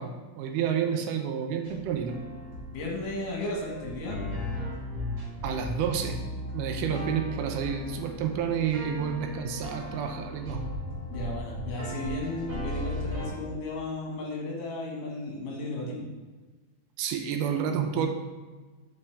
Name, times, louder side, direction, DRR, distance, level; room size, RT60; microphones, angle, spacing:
voice 1, 0.0-2.2 5.4-6.2 6.5-10.6 17.0-18.1, right 7 dB, 80° right, 4 dB, 2.1 m, -30 dB
sound 1, 1.6-13.3, left 1 dB, 45° right, 2.2 m, -37 dB
voice 2, 2.7-4.2 11.1-16.1, left 2 dB, 75° left, -2 dB, 2.9 m, -34 dB
8.2 x 4.3 x 3.3 m, 1.3 s
omnidirectional pair, 3.8 m